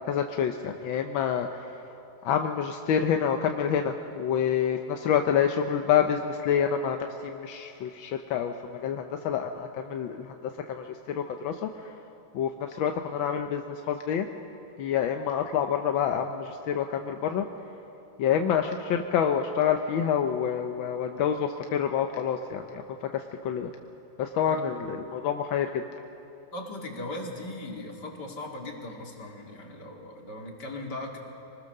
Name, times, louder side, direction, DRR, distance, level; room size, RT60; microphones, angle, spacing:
voice 1, 0.1-1.8 2.2-10.3 10.7-11.9 12.3-14.3 14.8-17.4 18.2-23.7 24.2-25.8, left 8 dB, 85° left, 5 dB, 1.6 m, -27 dB
voice 2, 26.5-31.2, left 2 dB, 60° left, 0 dB, 2.9 m, -38 dB
24.5 x 20.0 x 6.6 m, 2.9 s
omnidirectional pair, 2.1 m